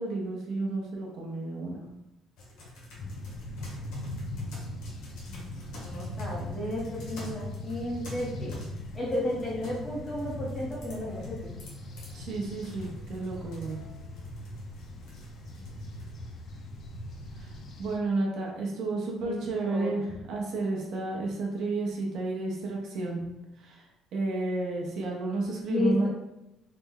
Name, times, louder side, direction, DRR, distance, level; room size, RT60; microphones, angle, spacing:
voice 1, 0.0-1.8 12.1-13.8 17.4-17.5 17.8-23.3 23.6-23.8 24.1-26.1, right 3 dB, 55° right, -1 dB, 0.6 m, -31 dB
sound 1, 2.4-16.1, left 2 dB, 75° left, 1.1 m, -51 dB
sound 2, 3.0-18.0, left 1 dB, 40° left, 0.4 m, -40 dB
voice 2, 5.7-8.6 8.9-11.5 19.2-20.0 25.7-26.1, left 1 dB, 15° left, -5 dB, 0.8 m, -33 dB
3.3 x 2.1 x 3.6 m, 0.90 s
cardioid pair, 175°, 0 cm